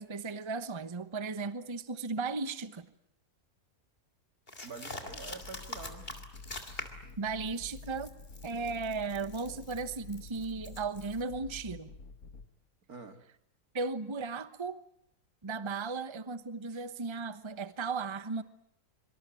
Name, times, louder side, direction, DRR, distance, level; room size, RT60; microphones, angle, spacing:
voice 1, 0.0-2.9 7.2-8.1 8.4-11.9 13.7-14.8 15.4-18.4, right 4 dB, 20° right, 1.0 m, -36 dB
sound 1, 4.5-7.1 7.5-11.2, left 2 dB, 40° left, 3.2 m, -45 dB
voice 2, 4.6-6.1 9.5-9.6 12.9-13.2 15.9-16.0 16.7-16.8, right 4 dB, 75° right, 2.9 m, -47 dB
sound 2, 5.1-12.5, left 3 dB, 80° left, 2.7 m, -49 dB
25.5 x 25.5 x 9.1 m
omnidirectional pair, 1.6 m